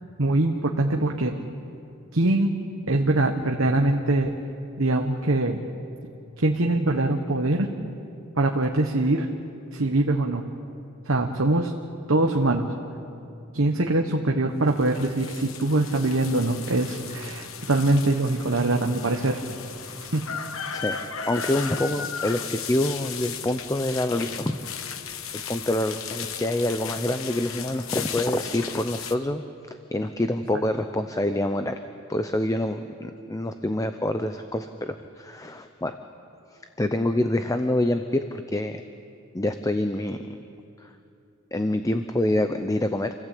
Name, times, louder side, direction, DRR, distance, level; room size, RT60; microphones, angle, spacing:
voice 1, 0.2-1.4 2.1-2.5 2.9-4.3 4.8-5.6 6.4-7.7 8.4-9.3 9.7-10.4 11.1-11.7 12.1-12.7 13.5-19.4 20.1-20.2, right 2 dB, 70° right, 3 dB, 1.2 m, -23 dB
sound 1, 14.7-29.2, left 7 dB, 75° left, 1.2 m, -36 dB
voice 2, 21.3-24.6 25.5-31.8 32.1-36.0 36.8-38.8 39.3-40.4 40.8-40.9 41.5-43.1, left 1 dB, 15° left, 8 dB, 0.7 m, -26 dB
27.5 x 16.0 x 8.5 m, 2.7 s
head